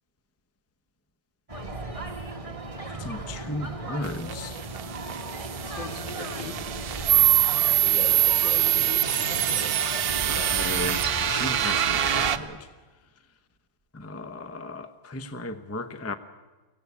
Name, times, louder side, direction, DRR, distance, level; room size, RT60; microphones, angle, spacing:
sound 1, 1.5-12.4, right 2 dB, 20° right, 1.8 m, -35 dB
voice 1, 3.0-4.6 10.3-11.0 11.3-12.6 13.9-16.1, left 2 dB, 15° left, 10 dB, 0.6 m, -35 dB
sound 2, 4.0-12.4, right 11 dB, 60° right, 1.3 m, -24 dB
voice 2, 5.6-6.6 7.8-9.7 10.3-10.8, left 2 dB, 80° left, 4 dB, 3.4 m, -39 dB
24.5 x 17.5 x 8.4 m, 1.2 s
omnidirectional pair, 2.0 m